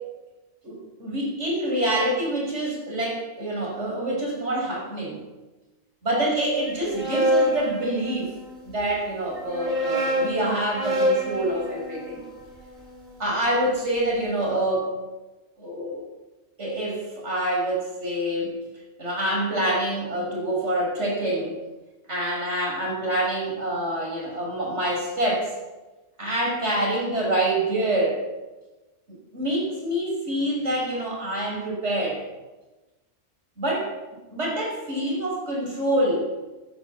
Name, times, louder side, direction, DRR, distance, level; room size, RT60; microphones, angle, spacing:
voice 1, 0.6-5.2 6.0-8.3 8.6-12.2 13.2-14.9 15.6-16.0 16.6-18.6 19.0-21.6 22.1-25.5 26.2-28.2 29.1-32.2 33.6-33.9 34.3-36.3, right 1 dB, 80° right, -2 dB, 6.2 m, -26 dB
sound 1, 6.7-8.6 9.4-13.5, equal, 40° right, 3.0 m, -27 dB
13.5 x 11.0 x 8.5 m, 1.1 s
omnidirectional pair, 1.2 m